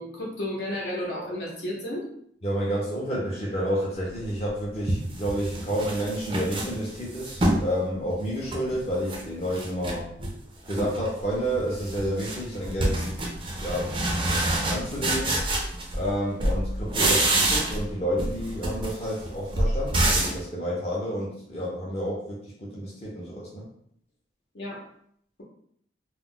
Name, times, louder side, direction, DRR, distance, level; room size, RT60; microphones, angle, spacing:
voice 1, 0.0-2.1 24.5-24.8, left 1 dB, 70° left, -3 dB, 0.8 m, -32 dB
voice 2, 2.4-10.1 10.7-13.3 13.6-13.9 14.7-15.4 15.9-23.7, equal, 35° left, -5 dB, 0.6 m, -30 dB
sound 1, 4.2-4.3 4.9-7.7 8.1-9.2 9.5-10.4 10.7-11.1 11.4-16.1 16.4-17.9 18.2-20.4, right 1 dB, 25° right, 0.4 m, -27 dB
2.3 x 2.1 x 3.6 m, 0.68 s
head